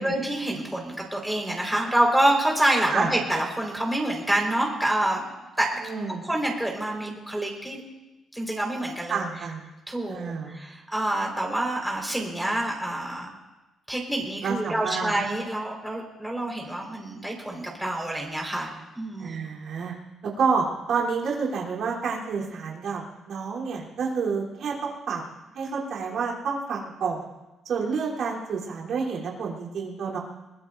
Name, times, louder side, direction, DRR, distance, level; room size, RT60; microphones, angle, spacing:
voice 1, 0.0-5.3 5.6-5.7 6.2-7.8 8.3-9.2 9.9-13.3 13.9-18.7 18.9-19.4, right 1 dB, 5° right, -1 dB, 4.8 m, -27 dB
voice 2, 5.8-6.2 9.1-9.7 10.1-10.6 14.4-15.1 19.2-19.9 20.4-25.2 25.5-27.3 27.7-30.2, right 5 dB, 70° right, -4 dB, 3.7 m, -29 dB
22.5 x 20.5 x 2.7 m, 1.1 s
cardioid pair, 90°, 0 cm